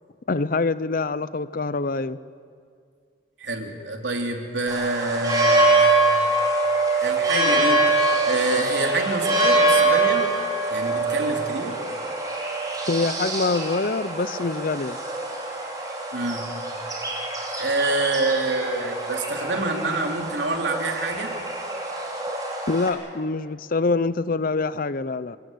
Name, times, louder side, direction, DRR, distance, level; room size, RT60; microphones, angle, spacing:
voice 1, 0.3-2.2 12.9-15.0 22.7-25.4, left 3 dB, 50° left, 16 dB, 0.7 m, -25 dB
voice 2, 3.4-6.0 6.9-7.9 8.2-10.3 10.7-11.8 16.1-16.5 17.6-21.3, right 2 dB, 85° right, 3 dB, 3.0 m, -26 dB
sound 1, 4.7-22.9, right 2 dB, 20° right, 4.0 m, -24 dB
28.0 x 15.5 x 9.3 m, 2.2 s
head